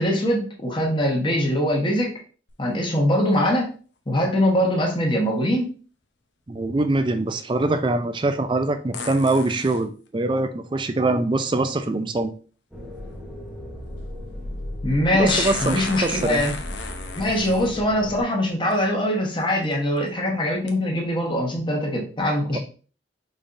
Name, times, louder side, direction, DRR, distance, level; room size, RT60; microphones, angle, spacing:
voice 1, 0.0-2.1 2.6-3.7 4.1-5.7 14.8-16.5 17.2-22.6, left 1 dB, 25° left, -1 dB, 1.1 m, -22 dB
sound 1, 2.5-2.6 8.9-9.8 11.8-11.9 15.3-17.7 18.7-18.8 19.4-19.7 20.7-20.8, left 4 dB, 80° left, 0.7 m, -34 dB
voice 2, 6.5-12.3 15.1-16.4 22.5-22.6, right 2 dB, 25° right, 8 dB, 0.4 m, -23 dB
sound 2, 12.7-18.2, left 1 dB, 5° right, 0.9 m, -35 dB
5.3 x 3.4 x 2.6 m, 0.39 s
head